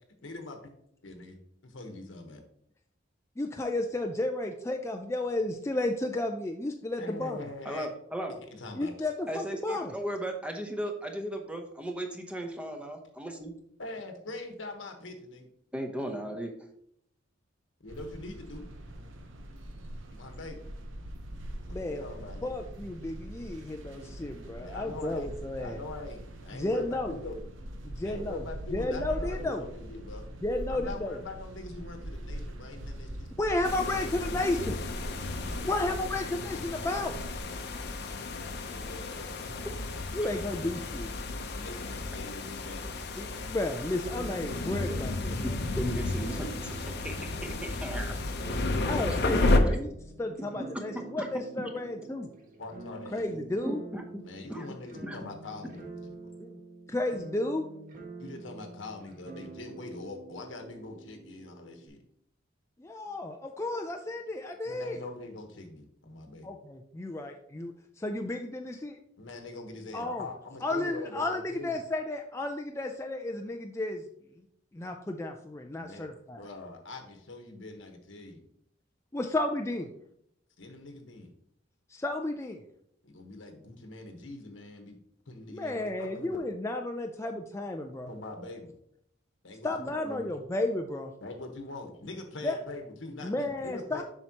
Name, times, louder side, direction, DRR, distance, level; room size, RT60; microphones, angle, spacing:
voice 1, 0.2-0.6 1.0-1.4 1.6-2.4 7.0-7.9 8.3-8.9 13.8-15.5 17.8-18.7 20.1-20.7 21.8-22.5 24.6-25.3 25.6-27.4 28.0-30.2 30.7-34.7 35.5-36.1 38.1-39.5 40.5-40.6 41.5-42.9 48.8-49.8 52.6-53.4 54.2-56.3 58.2-62.0 64.6-66.5 69.2-71.8 75.7-76.1 76.4-78.4 80.6-81.3 83.0-85.0 85.3-86.5 88.1-88.7 89.4-90.3 91.2-94.0, left 2 dB, 80° left, 4 dB, 1.3 m, -43 dB
voice 2, 3.4-7.4 8.7-9.9 21.7-22.0 22.4-25.8 26.5-27.2 27.8-28.4 28.7-29.6 30.4-31.2 33.4-34.8 35.6-37.1 40.1-41.1 43.2-45.6 48.8-49.9 50.2-52.3 53.1-53.8 56.4-56.5 56.9-57.7 62.8-65.0 66.4-69.0 69.9-70.3 70.6-74.0 74.7-76.4 79.1-79.9 81.9-82.6 85.5-88.1 89.6-91.1 92.4-92.6 93.2-94.0, left 2 dB, 15° left, 3 dB, 0.4 m, -33 dB
voice 3, 7.6-8.3 9.3-13.5 15.7-16.5 45.8-47.1 47.4-48.2 49.1-49.5 51.2-51.3 53.7-54.0 54.5-54.7 55.0-55.2, equal, 5° right, 3 dB, 0.8 m, -36 dB
sound 1, 17.9-37.4, right 1 dB, 90° right, 0.9 m, -42 dB
sound 2, 33.6-49.6, left 2 dB, 60° left, 0.8 m, -32 dB
sound 3, 44.1-61.9, right 3 dB, 45° right, 1.2 m, -47 dB
7.5 x 5.7 x 2.9 m, 0.72 s
head